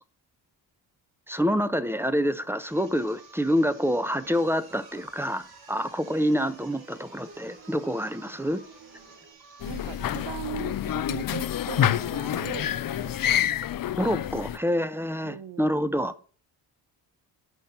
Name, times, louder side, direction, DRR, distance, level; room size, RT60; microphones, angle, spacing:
voice 1, 1.3-8.6 14.0-16.2, equal, 5° right, 0.7 m, -27 dB
sound 1, 2.5-10.3, right 4 dB, 90° right, 2.6 m, -53 dB
sound 2, 4.3-9.3, right 4 dB, 50° right, 3.7 m, -52 dB
sound 3, 9.6-14.6, left 11 dB, 50° left, 0.6 m, -28 dB
voice 2, 9.6-13.2 14.1-14.8 15.2-15.7, right 10 dB, 70° right, 0.8 m, -40 dB
8.5 x 6.0 x 5.5 m
cardioid pair, 70°, 44 cm